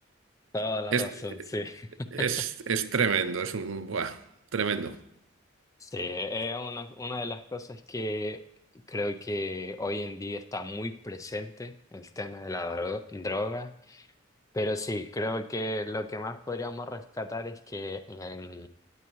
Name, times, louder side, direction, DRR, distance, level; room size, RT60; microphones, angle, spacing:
voice 1, 0.5-2.3 5.8-8.4 8.9-14.1 14.5-18.7, left 2 dB, 15° left, 0.4 m, -34 dB
voice 2, 2.1-4.2 4.5-5.0, right 6 dB, 75° right, 0.6 m, -28 dB
17.5 x 8.1 x 3.1 m
head